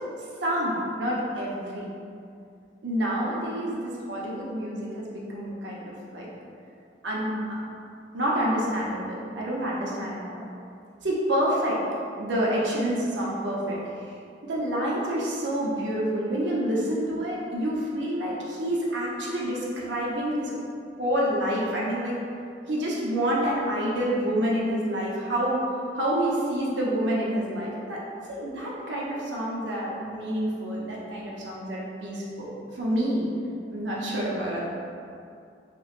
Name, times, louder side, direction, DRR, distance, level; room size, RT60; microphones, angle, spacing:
voice 1, 0.4-1.9 2.8-6.3 7.0-7.6 8.1-10.5 11.0-11.8 12.2-13.8 14.4-20.6 21.0-22.1 22.7-25.6 25.9-28.0 28.3-33.3 33.7-34.6, equal, 85° right, -5 dB, 0.7 m, -28 dB
3.0 x 2.9 x 2.5 m, 2.4 s
head